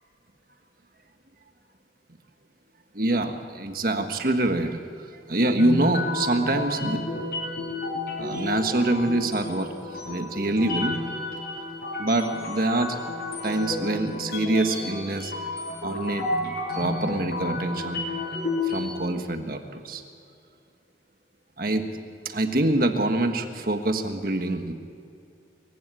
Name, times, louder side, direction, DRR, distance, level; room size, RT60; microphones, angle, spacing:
voice 1, 2.9-4.8 5.3-7.2 8.2-9.7 9.9-11.0 12.0-13.0 13.4-15.3 15.8-18.0 18.6-20.0 21.6-21.8 22.2-24.7, right 2 dB, 55° right, 6 dB, 1.6 m, -25 dB
sound 1, 5.6-18.8, left 2 dB, 55° left, 6.3 m, -31 dB
23.5 x 15.5 x 8.5 m, 2.6 s
head